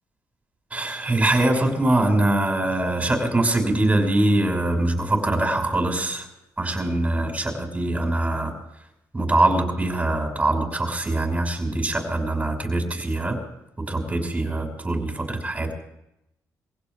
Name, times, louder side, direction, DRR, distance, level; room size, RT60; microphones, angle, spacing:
voice 1, 0.7-6.3 6.6-8.5 9.1-13.4 13.8-15.7, right 2 dB, 20° right, 2 dB, 5.6 m, -23 dB
23.0 x 16.5 x 3.5 m, 0.84 s
cardioid pair, 75°, 7 cm